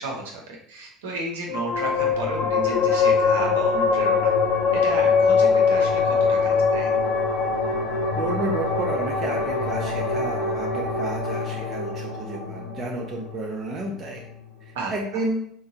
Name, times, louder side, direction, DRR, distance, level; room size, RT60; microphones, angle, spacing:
voice 1, 0.0-4.3 4.7-6.9 14.7-15.2, right 2 dB, 80° right, 0 dB, 0.8 m, -33 dB
sound 1, 1.5-14.4, left 4 dB, 60° left, 0.6 m, -23 dB
voice 2, 8.2-14.2 14.9-15.5, right 2 dB, 40° right, -1 dB, 0.6 m, -31 dB
3.7 x 2.2 x 2.7 m, 0.64 s
hypercardioid pair, 75°, 0 cm